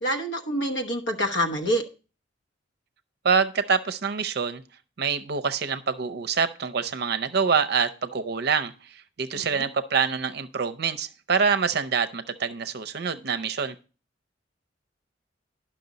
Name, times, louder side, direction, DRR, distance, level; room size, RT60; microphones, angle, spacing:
voice 1, 0.0-1.8 9.3-9.7, equal, 70° left, 3 dB, 1.1 m, -27 dB
voice 2, 3.2-4.6 5.0-8.7 9.2-13.7, right 6 dB, 60° right, 10 dB, 0.6 m, -25 dB
10.5 x 6.0 x 3.9 m, 0.35 s
head